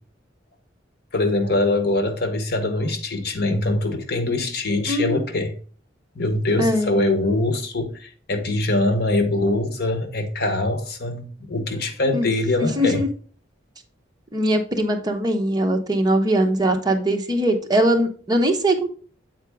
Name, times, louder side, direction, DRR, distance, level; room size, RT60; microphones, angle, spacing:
voice 1, 1.1-5.5 6.1-13.0, left 2 dB, 60° left, 1.1 m, -23 dB
voice 2, 4.9-5.2 6.6-7.0 12.1-12.3 12.6-13.1 14.3-18.9, right 1 dB, 20° right, 0.9 m, -21 dB
7.6 x 4.5 x 3.5 m
head